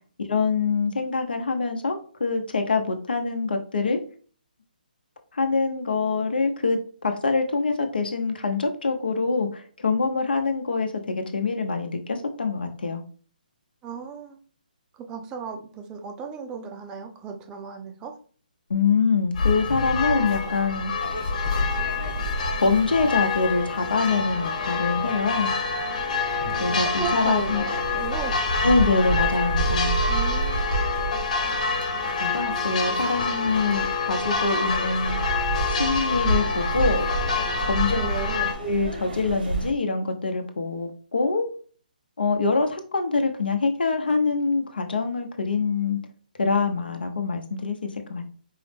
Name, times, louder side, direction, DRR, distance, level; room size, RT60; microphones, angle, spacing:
voice 1, 0.2-4.0 5.3-13.0 18.7-20.9 22.6-25.5 26.6-27.6 28.6-30.0 32.2-35.2 35.7-37.1 37.7-38.0 38.6-41.4 42.2-46.0 46.4-48.3, left 4 dB, 85° left, 5 dB, 0.8 m, -25 dB
voice 2, 13.8-14.4 14.9-18.2 26.5-28.4 30.1-30.6 37.9-38.6, right 6 dB, 15° right, 4 dB, 0.5 m, -35 dB
sound 1, 19.3-38.5, left 4 dB, 55° left, 1.2 m, -27 dB
sound 2, 21.0-39.7, right 3 dB, 80° right, 1.4 m, -31 dB
4.6 x 2.1 x 3.3 m, 0.42 s
hypercardioid pair, 155°, 5 cm